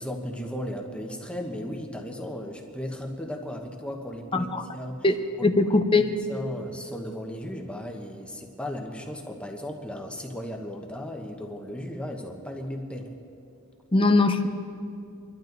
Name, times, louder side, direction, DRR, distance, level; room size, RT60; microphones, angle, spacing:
voice 1, 0.0-5.0 5.4-13.1, equal, 5° left, 2 dB, 1.1 m, -36 dB
voice 2, 5.4-6.1 13.9-14.5, left 3 dB, 25° left, 7 dB, 0.7 m, -21 dB
26.0 x 12.0 x 4.0 m, 2.5 s
head